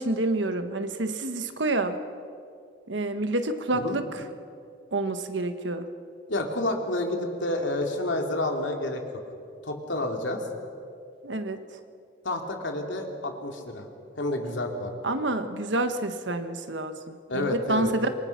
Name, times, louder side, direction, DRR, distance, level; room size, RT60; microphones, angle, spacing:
voice 1, 0.0-2.0 2.9-4.0 4.9-5.9 11.2-11.6 15.0-18.1, right 2 dB, 70° right, 8 dB, 1.5 m, -28 dB
voice 2, 6.3-9.0 9.6-10.4 12.2-13.8 14.2-14.9 17.3-18.1, left 1 dB, 75° left, 2 dB, 3.0 m, -29 dB
27.0 x 23.5 x 6.0 m, 2.4 s
head